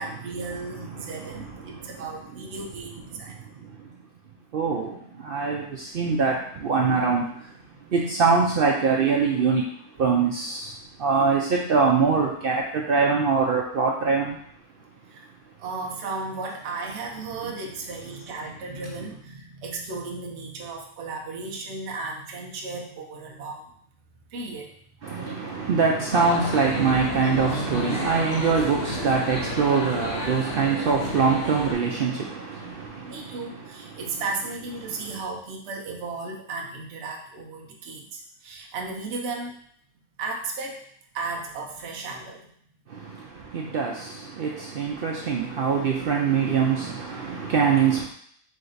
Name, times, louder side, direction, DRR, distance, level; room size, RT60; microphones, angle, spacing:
voice 1, 0.0-3.4 7.7-8.0 10.0-10.2 15.1-15.3 15.6-23.7 24.3-24.7 33.1-39.6 40.2-40.9 41.1-42.5, right 3 dB, 55° right, 0 dB, 0.9 m, -35 dB
voice 2, 0.9-2.0 2.6-3.0 3.3-4.0 4.5-14.4 25.0-34.0 34.8-35.2 42.9-48.0, right 5 dB, 80° right, -1 dB, 0.5 m, -24 dB
sound 1, 26.1-31.7, left 1 dB, 45° left, 1.3 m, -32 dB
5.0 x 2.5 x 3.9 m, 0.64 s
omnidirectional pair, 1.6 m